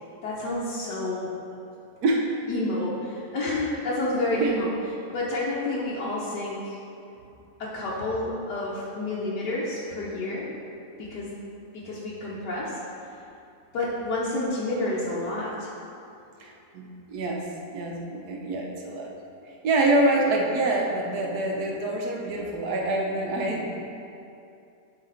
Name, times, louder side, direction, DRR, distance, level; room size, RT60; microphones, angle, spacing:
voice 1, 0.2-1.3 2.5-4.7 5.1-6.8 7.6-10.5 11.0-11.3 11.7-12.8 13.7-15.7, left 1 dB, 85° left, -7 dB, 1.6 m, -29 dB
voice 2, 16.4-17.5 17.7-19.1 19.6-23.7, right 2 dB, 70° right, 0 dB, 1.4 m, -26 dB
11.5 x 4.0 x 4.0 m, 2.6 s
omnidirectional pair, 1.7 m